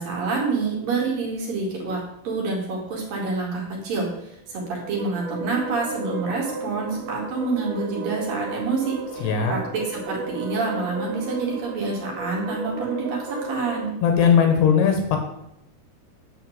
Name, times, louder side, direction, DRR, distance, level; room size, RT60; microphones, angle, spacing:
voice 1, 0.0-4.1 4.5-13.9, right 4 dB, 55° right, -2 dB, 3.4 m, -27 dB
sound 1, 4.5-13.9, right 3 dB, 80° right, 1.9 m, -34 dB
voice 2, 9.2-9.5 14.0-15.2, left 7 dB, 75° left, 4 dB, 3.3 m, -18 dB
10.0 x 4.3 x 7.8 m, 0.79 s
omnidirectional pair, 5.3 m